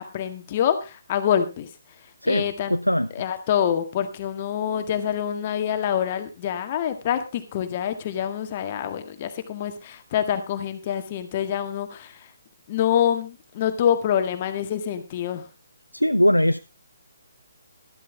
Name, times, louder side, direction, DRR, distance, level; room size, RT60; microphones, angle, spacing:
voice 1, 0.0-2.8 3.2-12.3 12.7-15.5, left 9 dB, 30° left, 1.8 m, -26 dB
voice 2, 2.2-3.1 15.9-16.6, equal, 90° left, 0.6 m, -21 dB
13.0 x 12.5 x 3.4 m
figure-of-eight pair, 140°, 0 cm